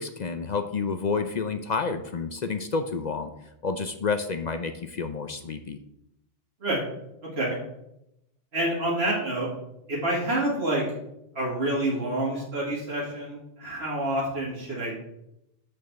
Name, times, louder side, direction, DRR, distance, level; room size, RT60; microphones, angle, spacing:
voice 1, 0.0-3.3 3.6-5.8, left 4 dB, 50° left, 8 dB, 0.7 m, -29 dB
voice 2, 7.2-7.6 8.5-9.5 9.9-10.8 11.3-15.0, right 1 dB, 80° right, -5 dB, 2.7 m, -28 dB
7.0 x 5.4 x 6.8 m, 0.82 s
omnidirectional pair, 1.1 m